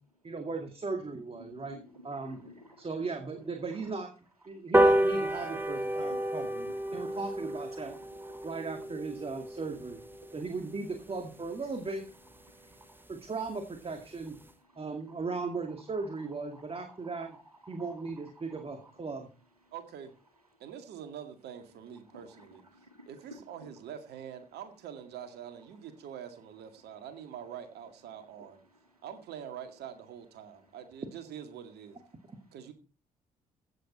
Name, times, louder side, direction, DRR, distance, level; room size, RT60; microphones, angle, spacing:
voice 1, 0.2-2.4 2.8-4.1 4.5-8.0 8.4-10.0 10.3-12.1 13.1-14.3 14.8-17.4 17.7-19.3 32.3-32.4, right 4 dB, 30° right, 2.2 m, -37 dB
voice 2, 1.5-3.0 3.4-4.0 5.9-8.5 10.2-10.3 12.4-13.1 14.6-14.8 15.9-16.3 16.5-17.9 18.2-18.9 22.1-23.1 28.7-28.9, equal, 90° right, 2.1 m, -55 dB
sound 1, 4.7-11.5 11.9-12.0 12.3-12.4 12.7-12.8 13.1-13.2 13.5-13.8 14.2-14.3, right 1 dB, 10° right, 1.5 m, -30 dB
voice 3, 19.7-20.1 20.6-22.6 23.1-28.6 29.0-32.0 32.5-32.7, right 9 dB, 60° right, 2.1 m, -45 dB
15.5 x 8.5 x 4.2 m
figure-of-eight pair, 40°, 19 cm